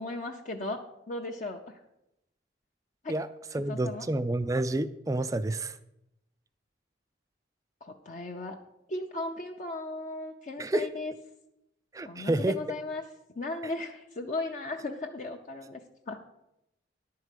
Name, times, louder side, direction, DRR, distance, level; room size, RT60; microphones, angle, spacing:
voice 1, 0.0-1.7 3.0-3.1 3.7-4.0 7.8-8.6 8.9-11.1 12.0-13.1 13.4-15.8 16.1-16.2, left 2 dB, 40° left, 2 dB, 0.6 m, -36 dB
voice 2, 3.5-5.8 10.6-10.9 11.9-12.6, right 2 dB, 15° right, 11 dB, 0.3 m, -29 dB
11.0 x 4.7 x 8.2 m, 0.86 s
head